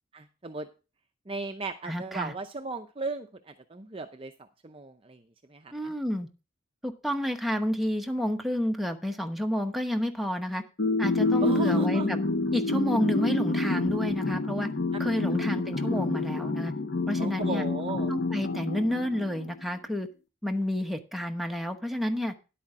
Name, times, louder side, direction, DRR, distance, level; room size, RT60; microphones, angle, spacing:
voice 1, 0.1-0.7 1.3-5.2 5.5-5.9 11.4-12.1 15.3-15.4 17.2-18.1, right 3 dB, 25° right, 7 dB, 0.6 m, -36 dB
voice 2, 1.8-2.3 5.7-6.3 6.8-10.6 11.0-12.2 12.5-14.7 15.0-16.7 17.1-17.7 18.1-20.1 20.4-22.3, equal, ahead, 4 dB, 0.9 m, -30 dB
sound 1, 10.8-19.6, left 2 dB, 50° left, 0.7 m, -28 dB
11.0 x 8.6 x 3.7 m, 0.31 s
head